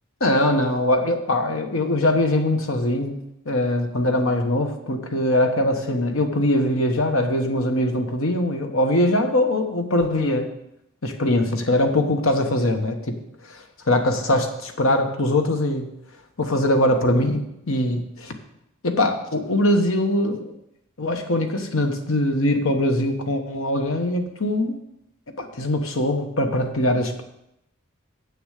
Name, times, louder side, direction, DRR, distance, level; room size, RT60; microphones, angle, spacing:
voice 1, 0.2-3.2 3.4-10.5 11.0-13.2 13.5-15.9 16.4-18.3 18.8-20.5 21.0-24.8 25.4-27.2, left 1 dB, 70° left, 5 dB, 1.2 m, -22 dB
8.0 x 6.9 x 6.5 m, 0.82 s
head